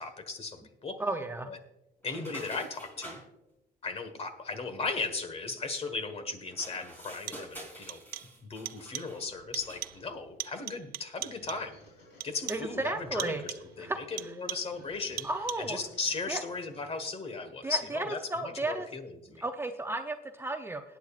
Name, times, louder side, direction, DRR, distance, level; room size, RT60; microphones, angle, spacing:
voice 1, 0.0-1.0 1.5-1.6 2.0-3.2 3.8-8.0 8.4-11.8 12.2-15.3 15.6-19.4, left 4 dB, 35° left, 9 dB, 1.5 m, -37 dB
voice 2, 1.0-1.5 12.5-13.4 13.8-14.0 14.2-14.3 15.2-15.8 16.3-16.4 17.6-18.9 19.4-20.8, right 2 dB, 15° right, 5 dB, 0.6 m, -33 dB
sound 1, 2.0-3.2 6.5-9.3 9.6-10.0, equal, 10° left, 4.1 m, -47 dB
sound 2, 6.0-6.1 7.0-7.6 7.9-8.4 8.7-9.2 9.5-10.1 10.4-11.8 12.2-12.8 13.2-13.8 14.2-14.8 15.2-15.8, right 14 dB, 65° right, 0.5 m, -41 dB
sound 3, 9.2-17.2, left 1 dB, 85° left, 4.6 m, -58 dB
18.5 x 9.2 x 2.5 m, 0.91 s
cardioid pair, 110°, 17 cm